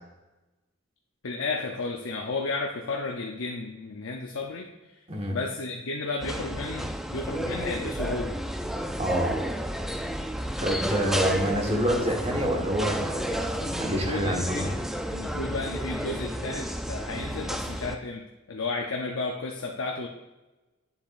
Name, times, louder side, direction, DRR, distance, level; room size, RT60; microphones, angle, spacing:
voice 1, 1.2-4.7 5.3-8.4 13.8-14.7 15.1-20.1, left 3 dB, 70° left, 0 dB, 0.7 m, -33 dB
sound 1, 6.2-18.0, equal, ahead, 0.4 m, -31 dB
voice 2, 9.0-9.4 10.6-14.8, equal, 30° right, 1 dB, 1.4 m, -27 dB
9.8 x 7.1 x 2.5 m, 1.1 s
head